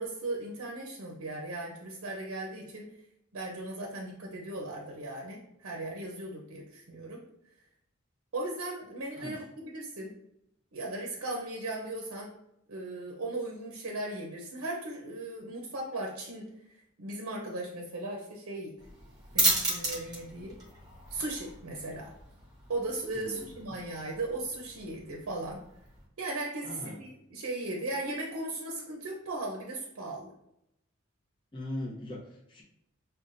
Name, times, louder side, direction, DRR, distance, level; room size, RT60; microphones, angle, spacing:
voice 1, 0.0-2.9 3.3-7.2 8.3-10.1 10.7-12.3 12.7-18.8 19.3-20.6 21.1-22.1 22.7-25.6 26.2-30.3, right 2 dB, 75° right, -1 dB, 0.6 m, -37 dB
sound 1, 18.8-26.0, right 2 dB, 20° right, 0.9 m, -35 dB
voice 2, 23.1-23.5 26.6-27.0 31.5-32.6, left 1 dB, 20° left, -5 dB, 0.7 m, -40 dB
5.5 x 2.2 x 2.5 m, 0.79 s
head